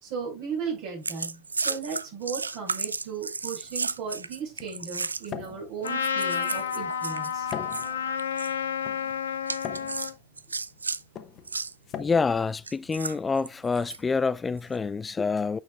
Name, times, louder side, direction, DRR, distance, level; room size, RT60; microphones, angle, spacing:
voice 1, 0.0-7.5, right 6 dB, 55° right, 5.1 m, -36 dB
sound 1, 1.0-5.5 5.9-7.9 8.2-8.5 9.5-11.0 11.4-11.7 12.7-14.0 14.6-14.8, right 4 dB, 90° right, 0.3 m, -33 dB
sound 2, 3.6-13.4, left 8 dB, 40° left, 1.0 m, -43 dB
Trumpet, 5.8-10.1, left 7 dB, 80° left, 1.0 m, -30 dB
voice 2, 12.0-15.6, left 4 dB, 20° left, 0.3 m, -27 dB
9.0 x 5.8 x 2.4 m
hypercardioid pair, 85°, 0 cm